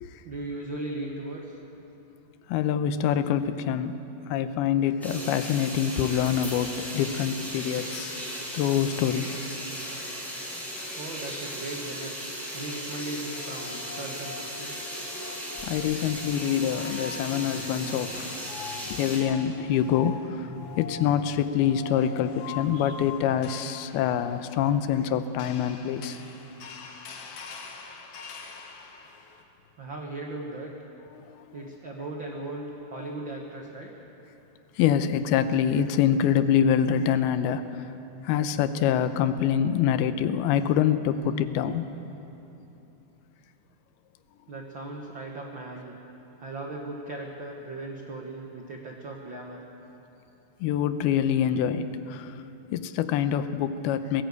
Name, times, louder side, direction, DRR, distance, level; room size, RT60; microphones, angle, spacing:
voice 1, 0.2-1.6 11.0-12.2 12.5-14.8 29.8-30.7 31.5-33.9 44.5-46.0 46.4-49.6, right 2 dB, 75° right, 0 dB, 1.1 m, -37 dB
voice 2, 2.5-4.0 4.3-8.2 8.5-9.4 15.6-26.2 33.0-33.1 34.8-37.9 38.2-41.9 50.6-52.4 52.7-54.2, left 9 dB, 90° left, 11 dB, 2.7 m, -25 dB
sound 1, 5.0-19.2, equal, ahead, 4.9 m, -37 dB
sound 2, 11.6-11.7 13.2-29.4, left 5 dB, 60° left, 2.4 m, -44 dB
20.0 x 16.5 x 8.3 m, 3.0 s
omnidirectional pair, 4.4 m